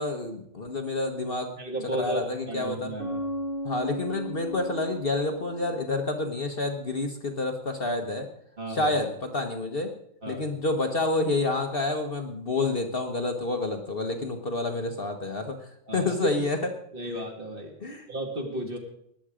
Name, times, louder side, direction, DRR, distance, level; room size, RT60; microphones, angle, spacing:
voice 1, 0.0-1.6 1.9-2.9 3.6-8.3 8.7-9.9 10.3-15.6 15.9-16.6 17.8-18.1, left 2 dB, 40° left, 4 dB, 1.3 m, -28 dB
voice 2, 1.6-3.3 8.6-9.0 10.2-10.5 15.9-16.1 16.9-17.7 18.1-18.8, right 1 dB, 40° right, 2 dB, 2.5 m, -34 dB
Bass guitar, 3.0-6.6, equal, 55° right, 2.6 m, -36 dB
18.0 x 11.0 x 5.0 m, 0.71 s
omnidirectional pair, 1.5 m